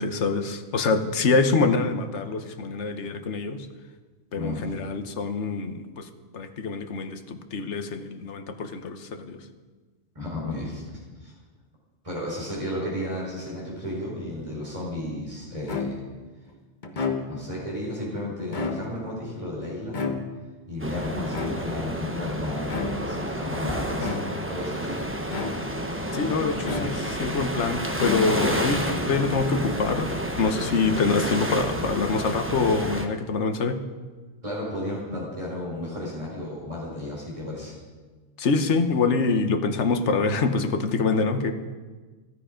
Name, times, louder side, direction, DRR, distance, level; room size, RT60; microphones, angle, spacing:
voice 1, 0.0-3.7 4.3-6.1 6.3-9.4 26.1-30.1 30.4-33.8 38.4-41.5, left 4 dB, 75° left, 8 dB, 1.3 m, -25 dB
voice 2, 4.3-4.7 10.1-11.3 12.0-16.0 17.3-20.0 20.7-24.2 24.5-25.0 28.7-28.9 34.4-37.7, left 1 dB, 30° right, -4 dB, 4.7 m, -33 dB
sound 1, 15.7-16.2 16.8-17.6 18.4-19.2 19.9-20.6 21.3-22.0 22.7-23.2 24.0-24.6 25.3-25.9 26.6-27.3 27.9-28.7, left 4 dB, 40° left, 1.3 m, -32 dB
sound 2, 20.8-33.1, equal, 10° right, 1.1 m, -30 dB
16.0 x 12.5 x 5.1 m, 1.4 s
omnidirectional pair, 1.2 m